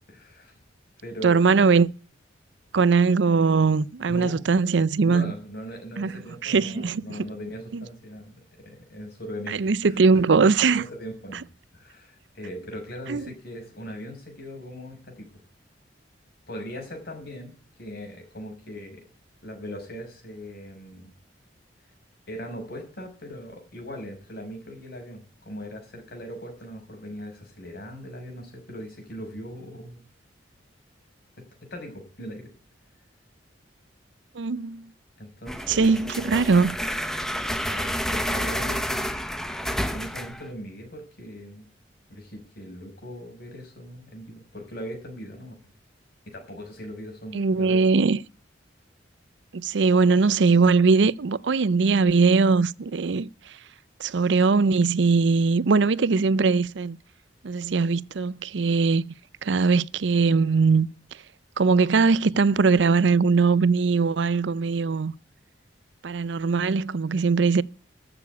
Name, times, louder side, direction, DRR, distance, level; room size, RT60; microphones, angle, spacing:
voice 1, 0.1-0.6 1.0-1.4 4.0-4.4 5.0-9.7 10.7-11.5 11.7-15.3 16.5-19.0 19.4-21.1 22.3-30.0 31.4-32.5 35.2-36.0 37.5-39.1 39.5-41.7 42.1-45.6 46.3-47.8, equal, 55° left, 5.9 m, -39 dB
voice 2, 1.2-1.9 2.7-5.3 6.0-7.3 7.7-7.8 9.5-10.8 13.1-13.3 34.3-34.9 35.7-36.7 47.3-48.2 49.5-53.6 54.0-57.0 57.4-59.0 59.4-60.9 61.6-65.1 66.0-67.6, right 4 dB, 65° right, 0.5 m, -21 dB
sound 1, 35.5-40.5, equal, 5° left, 1.0 m, -29 dB
14.0 x 7.0 x 8.2 m
head